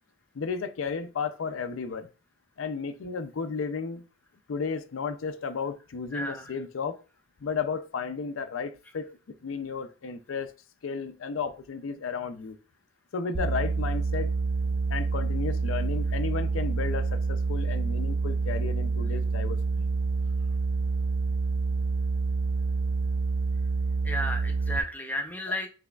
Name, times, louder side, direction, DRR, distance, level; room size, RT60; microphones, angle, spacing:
voice 1, 0.3-2.1 2.6-4.0 4.5-7.0 7.4-9.2 9.4-10.5 10.8-12.6 13.1-14.4 14.9-19.9, left 5 dB, 85° left, 0.4 m, -33 dB
voice 2, 6.1-6.5 24.0-25.7, equal, 10° left, 0.6 m, -32 dB
sound 1, 13.3-24.8, right 4 dB, 40° right, 0.4 m, -27 dB
5.9 x 3.2 x 2.3 m
head